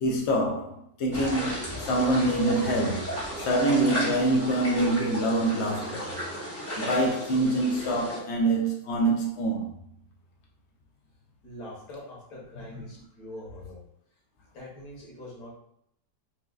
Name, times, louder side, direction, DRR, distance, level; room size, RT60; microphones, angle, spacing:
voice 1, 0.0-6.1 6.8-9.7 12.7-12.8, right 1 dB, 85° left, 0.6 m, -25 dB
sound 1, 1.1-8.2, equal, 15° left, 0.4 m, -34 dB
voice 2, 11.4-13.8 14.5-15.5, left 1 dB, 60° left, 1.5 m, -43 dB
4.5 x 2.3 x 2.3 m
omnidirectional pair, 1.8 m